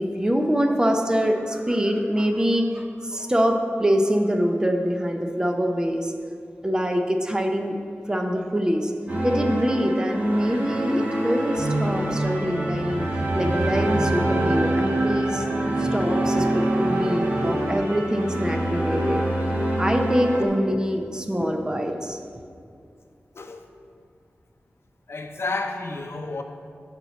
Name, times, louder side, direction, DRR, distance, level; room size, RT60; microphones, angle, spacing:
voice 1, 0.0-6.1 6.6-7.7 8.1-8.9 9.2-13.1 13.3-15.4 15.8-19.2 19.8-22.2, equal, 15° right, 4 dB, 0.7 m, -24 dB
sound 1, 9.1-20.4, right 1 dB, 35° right, 2.2 m, -27 dB
sound 2, 11.6-17.7, right 2 dB, 55° right, 0.7 m, -27 dB
voice 2, 25.1-26.4, left 3 dB, 70° left, 5 dB, 0.6 m, -31 dB
8.3 x 4.4 x 6.9 m, 2.3 s
wide cardioid pair, 90°, 5 cm